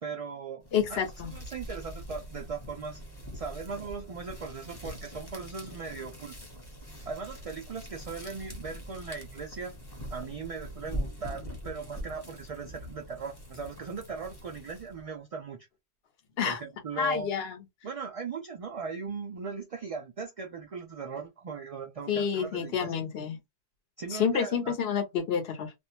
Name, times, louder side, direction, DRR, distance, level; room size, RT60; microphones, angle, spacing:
voice 1, 0.0-0.6 0.9-3.0 3.3-6.4 7.1-9.8 10.1-15.7 16.4-17.3 17.8-23.0 24.0-24.7, right 5 dB, 65° right, 0.3 m, -38 dB
sound 1, 0.6-15.1, equal, 25° left, 0.9 m, -43 dB
voice 2, 0.7-1.3 16.4-16.6 17.0-17.6 22.1-23.4 24.1-25.7, left 7 dB, 65° left, 1.0 m, -29 dB
2.5 x 2.1 x 2.8 m
omnidirectional pair, 1.1 m